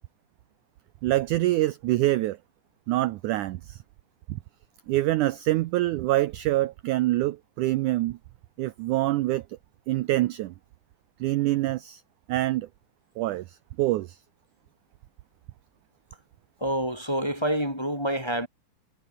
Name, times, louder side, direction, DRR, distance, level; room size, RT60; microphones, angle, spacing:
voice 1, 1.0-2.4 2.9-3.8 4.3-4.4 4.9-8.2 8.6-9.4 9.9-10.5 11.2-12.0 12.3-12.7 13.2-14.2, right 16 dB, 80° right, 1.8 m, -25 dB
voice 2, 16.6-18.5, right 1 dB, 10° left, 2.8 m, -27 dB
omnidirectional pair, 4.3 m